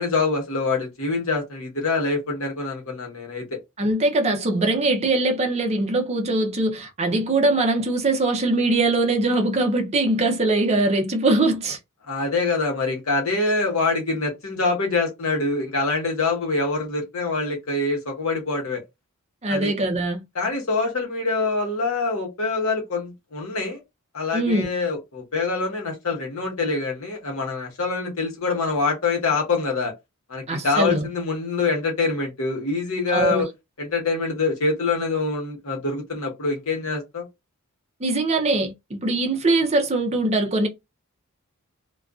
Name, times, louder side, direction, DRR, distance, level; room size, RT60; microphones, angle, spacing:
voice 1, 0.0-3.6 12.1-18.8 19.5-19.7 20.3-23.8 24.1-29.9 30.3-33.5 33.8-37.3, left 3 dB, 65° left, 1.0 m, -25 dB
voice 2, 3.8-11.8 19.4-20.2 24.3-24.7 30.5-31.1 33.1-33.4 38.0-40.7, right 2 dB, 30° right, 0.5 m, -22 dB
2.5 x 2.2 x 2.3 m
head